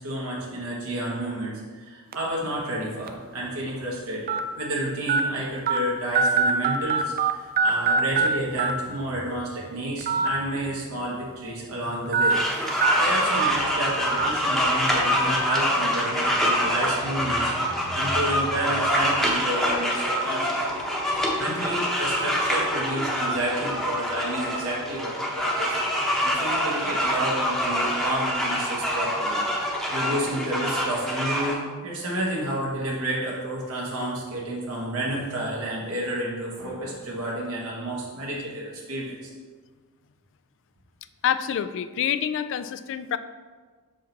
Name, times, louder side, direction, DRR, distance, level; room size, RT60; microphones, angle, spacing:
voice 1, 0.0-12.4 12.7-20.8 21.4-29.4 29.9-39.3, right 1 dB, 70° right, -4 dB, 1.2 m, -30 dB
sound 1, 2.1-2.3 3.1-3.2 4.3-4.4 5.1-5.2 5.7-5.8 6.1-7.3 7.6-8.3 8.6-8.7 10.0-10.3 10.7-10.8 12.1-12.3 12.8-12.9 13.4-13.5 14.2-14.3, right 5 dB, 40° right, 0.4 m, -21 dB
sound 2, 12.3-31.5, equal, ahead, 0.9 m, -25 dB
voice 2, 41.2-43.2, left 9 dB, 55° left, 13 dB, 0.3 m, -27 dB
5.9 x 5.0 x 3.9 m, 1.5 s
head